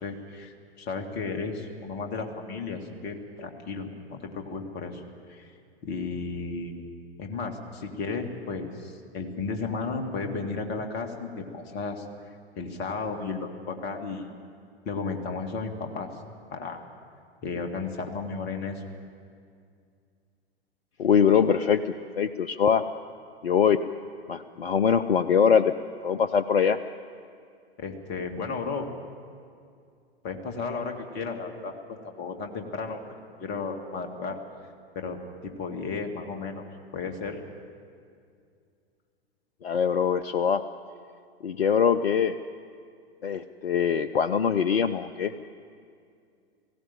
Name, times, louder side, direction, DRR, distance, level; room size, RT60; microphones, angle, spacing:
voice 1, 0.0-5.0 5.3-5.5 5.8-6.8 7.2-12.0 12.6-14.3 14.9-16.2 16.5-16.8 17.4-18.8 27.8-28.9 30.2-31.7 32.0-33.1 33.4-34.4 35.0-36.6 36.9-37.4, left 4 dB, 30° left, 4 dB, 2.2 m, -34 dB
voice 2, 21.0-22.8 23.4-23.8 24.3-25.7 26.0-26.8 39.6-40.6 41.4-42.3 43.2-45.3, left 7 dB, 70° left, 12 dB, 0.7 m, -23 dB
18.5 x 16.0 x 9.2 m, 2.3 s
figure-of-eight pair, 100°, 32 cm